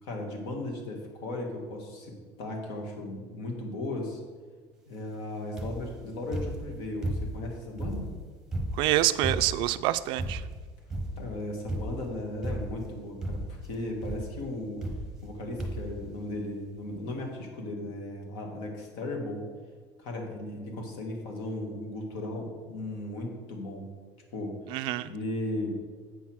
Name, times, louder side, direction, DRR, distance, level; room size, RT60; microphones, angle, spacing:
voice 1, 0.0-4.2 4.9-8.0 11.2-14.8 15.2-19.4 20.0-23.9 24.3-24.5 25.0-25.7, left 1 dB, 70° left, 2 dB, 2.1 m, -36 dB
sound 1, 5.6-5.9 6.3-7.5 7.8-9.7 10.2-10.6 10.9-11.3 11.7-12.1 12.4-12.9 13.2-13.6 14.0-14.3 14.8-15.3 15.6-16.0 16.7-16.8 17.0-17.1, right 1 dB, 5° right, 0.9 m, -34 dB
voice 2, 8.7-10.4 24.7-25.1, right 15 dB, 55° right, 14 dB, 0.3 m, -26 dB
8.1 x 5.7 x 6.2 m, 1.5 s
cardioid pair, 175°, 10 cm